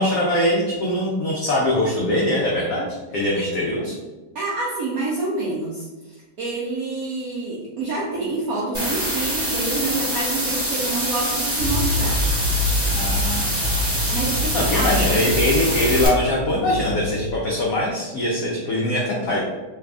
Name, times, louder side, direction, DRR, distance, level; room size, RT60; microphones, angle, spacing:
voice 1, 0.0-4.0 12.9-13.9 14.5-19.4, left 1 dB, 85° left, -4 dB, 0.7 m, -22 dB
voice 2, 4.3-5.9 6.4-12.2 14.1-15.4, right 2 dB, 80° right, -5 dB, 0.8 m, -27 dB
sound 1, 8.7-16.1, right 1 dB, 15° right, 0.7 m, -25 dB
sound 2, 11.6-17.3, left 1 dB, 45° right, 1.0 m, -26 dB
3.2 x 2.4 x 3.4 m, 1.2 s
omnidirectional pair, 2.2 m